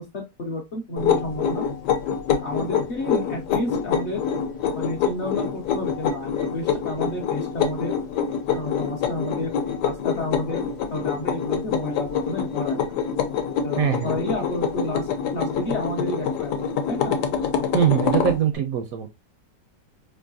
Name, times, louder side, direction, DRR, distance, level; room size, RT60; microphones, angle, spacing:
voice 1, 0.0-1.6 2.4-4.2 4.7-7.9 8.5-9.5 9.8-12.9 13.6-17.2, left 1 dB, 55° left, 0.8 m, -31 dB
sound 1, 1.0-18.4, left 7 dB, 75° left, 1.2 m, -26 dB
voice 2, 13.8-14.2 17.7-19.1, right 10 dB, 70° right, 0.8 m, -22 dB
4.5 x 2.6 x 2.6 m
omnidirectional pair, 1.8 m